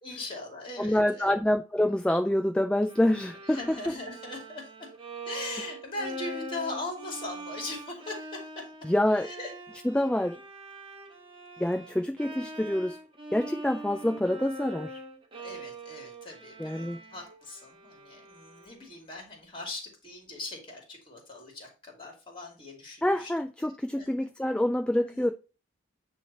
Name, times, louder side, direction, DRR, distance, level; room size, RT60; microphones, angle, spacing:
voice 1, 0.0-1.3 3.5-4.7 5.2-8.6 9.2-9.5 15.4-23.3 23.9-24.3 25.0-25.3, left 2 dB, 25° left, 2.6 m, -40 dB
voice 2, 0.8-3.6 8.8-9.3 9.8-10.4 11.6-13.0 13.3-15.0 16.6-17.0 23.0-25.3, left 1 dB, 5° left, 0.3 m, -26 dB
Bowed string instrument, 2.9-19.0, right 1 dB, 25° right, 1.3 m, -43 dB
9.4 x 3.3 x 4.2 m
head